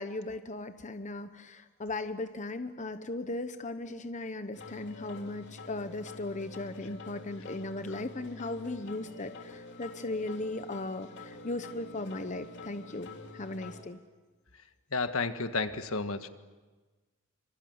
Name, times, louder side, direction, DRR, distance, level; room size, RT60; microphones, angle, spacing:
voice 1, 0.0-14.0, left 2 dB, 35° left, 10 dB, 0.9 m, -37 dB
sound 1, 4.5-13.8, left 2 dB, 55° left, 3.0 m, -47 dB
voice 2, 14.9-16.3, left 3 dB, 75° left, 9 dB, 1.6 m, -31 dB
26.5 x 26.0 x 7.9 m, 1.3 s
head